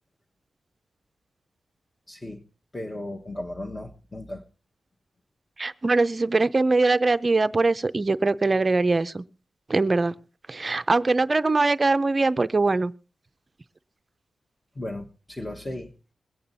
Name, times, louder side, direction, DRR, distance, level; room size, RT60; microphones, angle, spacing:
voice 1, 2.1-2.4 2.7-4.4 14.7-15.9, left 1 dB, 15° left, 1.0 m, -35 dB
voice 2, 5.6-9.2 9.7-10.1 10.5-12.9, right 3 dB, 25° right, 0.6 m, -22 dB
21.5 x 8.5 x 4.0 m
wide cardioid pair, 145°, 0 cm